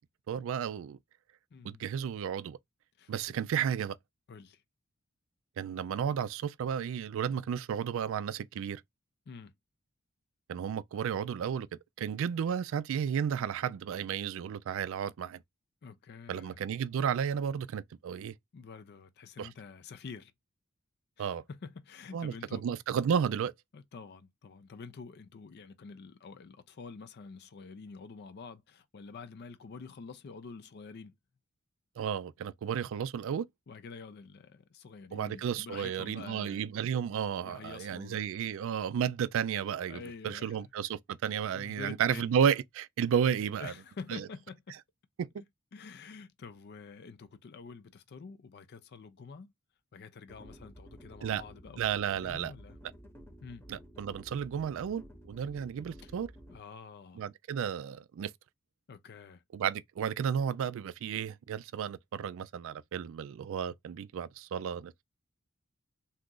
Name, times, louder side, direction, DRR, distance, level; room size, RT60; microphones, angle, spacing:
voice 1, 0.3-1.0 1.6-2.6 3.1-4.0 5.6-8.8 10.5-11.7 12.0-15.4 16.3-18.3 19.4-19.5 21.2-21.4 22.1-23.5 32.0-33.5 35.1-43.7 44.1-44.2 45.2-45.3 51.2-51.4 51.8-52.5 53.7-56.3 57.2-58.3 59.5-65.0, right 8 dB, 65° right, 0.3 m, -33 dB
voice 2, 1.5-1.8 3.0-3.1 4.3-4.6 9.3-9.5 15.8-16.6 18.5-20.3 21.2-22.6 23.7-31.1 33.7-36.7 37.5-38.2 39.9-40.7 41.5-42.3 43.6-44.8 45.4-45.5 45.7-49.5 49.9-52.8 53.4-53.7 56.0-56.1 56.5-57.2 58.9-59.4, left 4 dB, 50° left, 0.4 m, -47 dB
sound 1, 50.3-56.6, equal, 10° left, 0.9 m, -52 dB
2.8 x 2.4 x 3.7 m
head